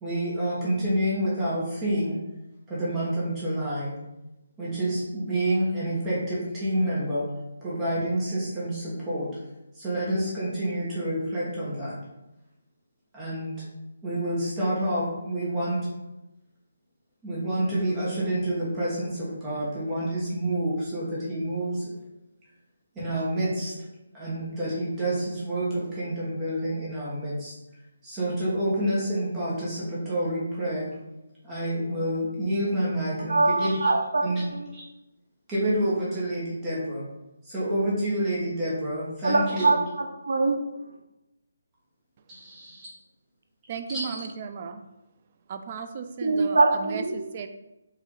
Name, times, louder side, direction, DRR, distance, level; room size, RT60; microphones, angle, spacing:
voice 1, 0.0-2.2 2.7-3.9 4.6-7.2 7.6-9.3 9.7-12.0 13.1-13.6 14.0-15.8 17.2-21.9 22.9-23.7 24.1-27.5 28.0-30.9 31.4-33.9 34.2-34.4 34.7-34.8 35.5-37.0 37.4-39.7 42.3-42.9 43.9-44.2, right 1 dB, 10° right, -8 dB, 1.2 m, -28 dB
voice 2, 33.3-34.2 34.5-34.7 39.2-40.6 46.2-47.2, right 3 dB, 90° right, 3 dB, 0.8 m, -23 dB
voice 3, 43.7-44.8 45.5-47.5, right 6 dB, 30° right, 8 dB, 0.3 m, -36 dB
4.9 x 2.7 x 3.8 m, 0.95 s
hypercardioid pair, 170°, 0 cm